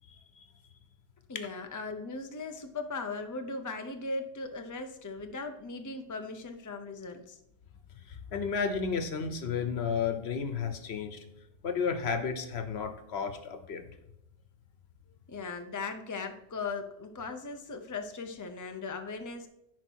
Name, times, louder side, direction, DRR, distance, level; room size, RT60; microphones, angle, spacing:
voice 1, 0.1-0.4 8.1-11.2 11.6-13.8, left 6 dB, 80° left, 8 dB, 1.2 m, -32 dB
voice 2, 1.3-7.4 15.3-19.5, left 3 dB, 20° left, 6 dB, 0.7 m, -38 dB
10.5 x 4.6 x 4.6 m, 0.84 s
omnidirectional pair, 1.1 m